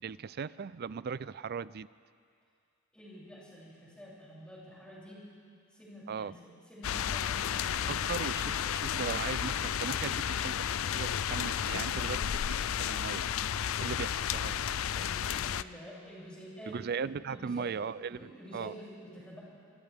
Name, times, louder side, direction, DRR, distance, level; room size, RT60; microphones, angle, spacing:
voice 1, 0.0-1.9 6.1-6.3 7.9-13.2 13.8-14.5 16.7-18.7, right 6 dB, 50° right, 17 dB, 0.4 m, -38 dB
voice 2, 2.9-5.3 5.7-8.0 14.9-16.8 17.3-17.7 18.1-19.4, equal, 5° left, -7 dB, 7.1 m, -49 dB
sound 1, 6.8-15.6, left 9 dB, 80° left, 0.4 m, -32 dB
27.0 x 26.5 x 3.6 m, 2.3 s
head